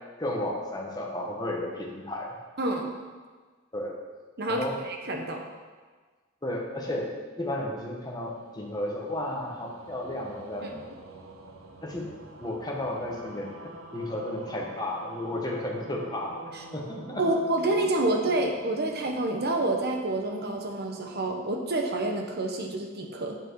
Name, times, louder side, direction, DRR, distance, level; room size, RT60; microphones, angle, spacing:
voice 1, 0.2-2.3 3.7-4.0 4.5-4.8 6.4-10.8 11.8-12.1 12.4-16.4 16.7-17.2, left 1 dB, 20° left, -2 dB, 1.3 m, -33 dB
voice 2, 2.6-3.0 4.4-5.5 10.6-10.7 16.5-16.6 17.2-23.4, right 2 dB, 50° right, 2 dB, 1.1 m, -28 dB
sound 1, 7.8-22.2, right 2 dB, 90° right, 1.0 m, -47 dB
9.0 x 6.0 x 4.7 m, 1.4 s
head